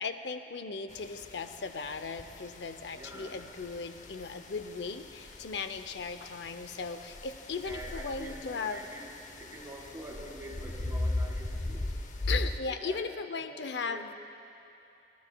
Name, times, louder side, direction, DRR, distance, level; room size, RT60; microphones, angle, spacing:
voice 1, 0.0-8.8 12.3-14.1, left 4 dB, 75° left, 9 dB, 0.6 m, -37 dB
sound 1, 0.9-12.6, left 2 dB, 45° left, 0.7 m, -39 dB
voice 2, 2.9-3.4 7.6-11.8 12.7-14.1, right 1 dB, 15° right, -2 dB, 1.8 m, -46 dB
24.0 x 15.0 x 2.2 m, 2.8 s
head